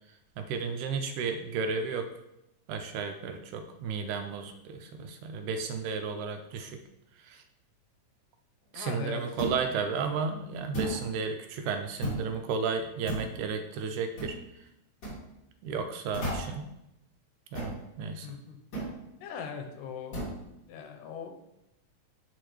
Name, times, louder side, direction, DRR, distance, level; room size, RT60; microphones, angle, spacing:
voice 1, 0.4-2.1 2.7-6.8 7.3-7.4 8.7-14.4 15.6-16.7 17.5-18.3, right 5 dB, 80° right, 6 dB, 1.9 m, -33 dB
voice 2, 8.7-9.2 18.2-18.6 19.2-20.2 20.7-21.4, left 7 dB, 80° left, 4 dB, 2.4 m, -40 dB
sound 1, 9.4-9.7 10.7-11.0 12.0-12.3 13.1-13.3 14.2-14.4 15.0-15.2 16.1-16.6 17.5-17.8 18.7-19.0 20.1-20.4, right 1 dB, 35° left, 2.8 m, -34 dB
9.5 x 4.2 x 3.1 m, 0.84 s
omnidirectional pair, 3.8 m